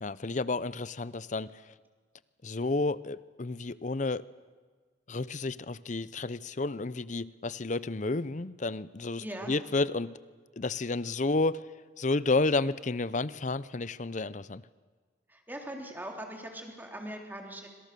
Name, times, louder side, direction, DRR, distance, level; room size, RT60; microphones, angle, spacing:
voice 1, 0.0-1.5 2.4-4.2 5.1-10.1 10.6-11.6 12.0-14.6, left 3 dB, 40° left, 17 dB, 0.7 m, -31 dB
voice 2, 9.2-9.6 15.3-17.7, right 1 dB, 10° right, 2 dB, 3.5 m, -41 dB
27.5 x 26.0 x 6.9 m, 1.5 s
head